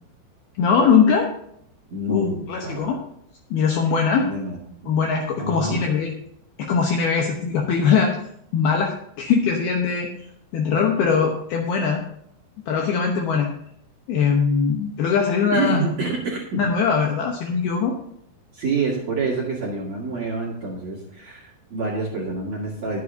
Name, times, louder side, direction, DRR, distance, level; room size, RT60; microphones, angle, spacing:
voice 1, 0.6-1.3 2.1-3.0 3.5-4.3 4.9-6.1 6.6-8.2 8.5-10.1 10.5-12.0 12.7-13.5 14.1-15.8 16.6-18.0, left 6 dB, 75° left, 1 dB, 2.4 m, -21 dB
voice 2, 1.9-2.9 4.2-4.6 5.4-5.8 15.5-16.7 18.5-23.0, right 3 dB, 50° right, -4 dB, 2.4 m, -27 dB
21.5 x 7.6 x 2.7 m, 0.73 s
omnidirectional pair, 5.7 m